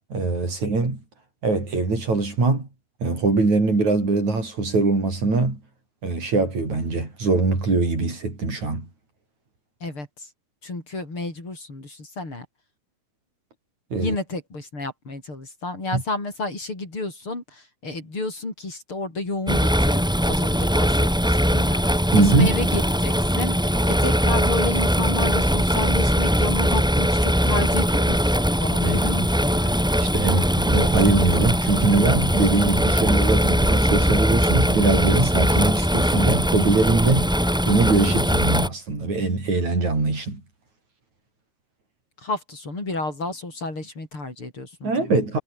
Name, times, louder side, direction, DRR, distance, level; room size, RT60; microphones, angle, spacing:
voice 1, 0.1-1.0 1.4-2.7 3.0-5.6 6.0-8.9 13.9-14.2 15.9-16.0 22.1-22.5 28.8-29.0 30.0-37.3 37.7-40.4 44.8-45.4, right 3 dB, 70° right, 8.9 m, -22 dB
voice 2, 9.8-10.3 10.6-12.5 14.0-20.0 20.3-29.9 42.2-45.2, left 2 dB, 45° left, 8.1 m, -31 dB
sound 1, 19.5-38.7, equal, ahead, 5.7 m, -21 dB
omnidirectional pair, 3.3 m